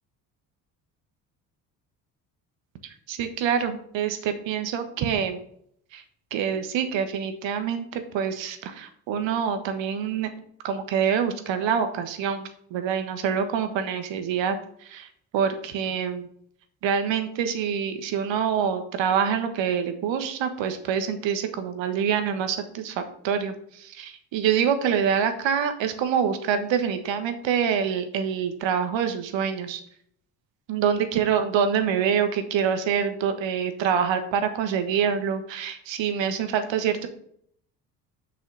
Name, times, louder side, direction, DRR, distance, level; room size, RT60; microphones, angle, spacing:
voice 1, 3.1-5.4 5.9-6.0 6.3-10.3 10.6-14.6 14.8-15.1 15.3-16.3 16.8-29.8 30.7-37.1, right 7 dB, 65° right, 8 dB, 1.4 m, -26 dB
6.4 x 5.8 x 5.5 m, 0.66 s
hypercardioid pair, 55°, 50 cm